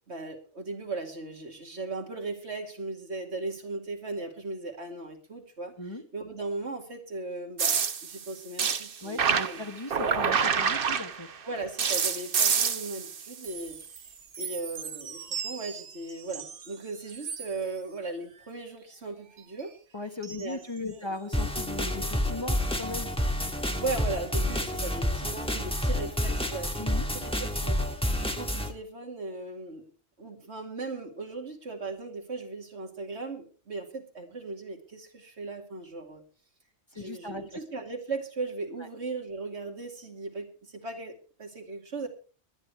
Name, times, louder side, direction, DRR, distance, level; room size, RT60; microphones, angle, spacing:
voice 1, 0.1-5.7 6.1-9.2 9.5-9.6 11.4-19.7 20.3-21.1 23.8-26.7 27.1-27.8 28.2-29.8 30.2-36.2 36.9-41.1 41.4-42.1, right 3 dB, 75° right, 3 dB, 2.8 m, -37 dB
sound 1, 7.6-11.4 11.8-14.1 14.3-16.7 17.1-17.5 20.2-20.4 21.3-21.4, right 6 dB, 55° right, 1.0 m, -29 dB
voice 2, 9.0-11.3 19.9-23.1 26.8-27.1 36.9-37.6, left 2 dB, 25° left, 5 dB, 1.4 m, -38 dB
sound 2, 21.3-28.7, left 1 dB, 5° left, 1.6 m, -29 dB
22.5 x 10.0 x 3.4 m, 0.36 s
omnidirectional pair, 1.2 m